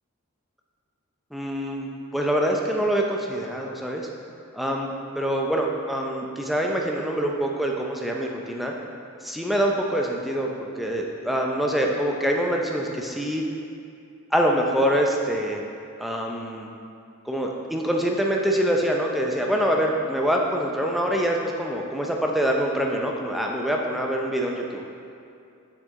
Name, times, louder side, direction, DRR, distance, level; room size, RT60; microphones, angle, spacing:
voice 1, 1.3-4.1 4.5-8.7 9.2-13.4 14.3-15.7 16.0-16.7 17.3-24.8, equal, ahead, 0 dB, 0.5 m, -25 dB
6.6 x 6.6 x 3.6 m, 2.6 s
head